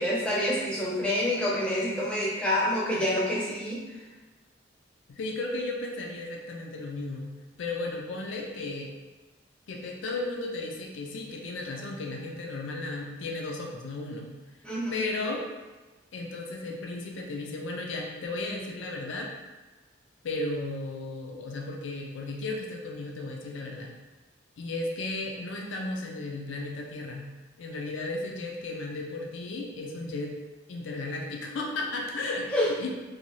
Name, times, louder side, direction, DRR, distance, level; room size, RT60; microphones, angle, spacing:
voice 1, 0.0-3.8 14.6-14.9 32.5-32.6, left 1 dB, 5° left, -7 dB, 0.6 m, -27 dB
voice 2, 5.1-8.9 9.7-14.4 14.9-15.4 16.1-19.3 20.2-23.9 24.6-27.3 27.6-30.3 30.7-32.9, left 2 dB, 75° left, 0 dB, 0.4 m, -34 dB
2.6 x 2.2 x 3.0 m, 1.2 s
head